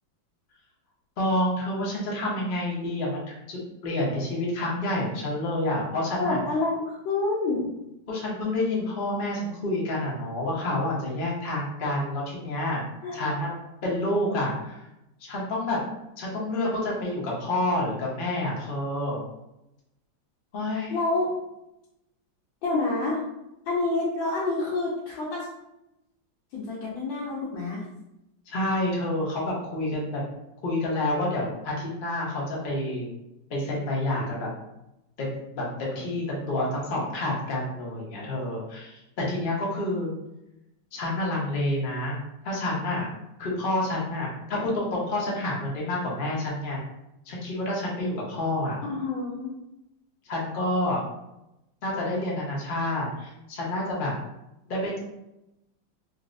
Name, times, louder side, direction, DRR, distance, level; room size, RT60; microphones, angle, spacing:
voice 1, 1.2-6.4 8.1-12.8 13.1-13.5 13.8-14.9 15.2-15.8 16.2-19.2 20.5-21.0 28.5-30.2 30.6-33.1 33.5-34.5 35.2-40.1 40.9-42.1 42.4-43.1 43.4-46.8 47.3-48.8 50.2-51.0 51.8-54.1 54.7-55.0, left 1 dB, 60° left, -4 dB, 0.5 m, -28 dB
voice 2, 6.2-7.7 13.0-13.3 20.9-21.3 22.6-23.2 23.7-25.5 26.5-27.8 48.8-49.5, left 2 dB, 85° left, -5 dB, 1.4 m, -28 dB
4.0 x 2.0 x 2.5 m, 0.88 s
omnidirectional pair, 2.1 m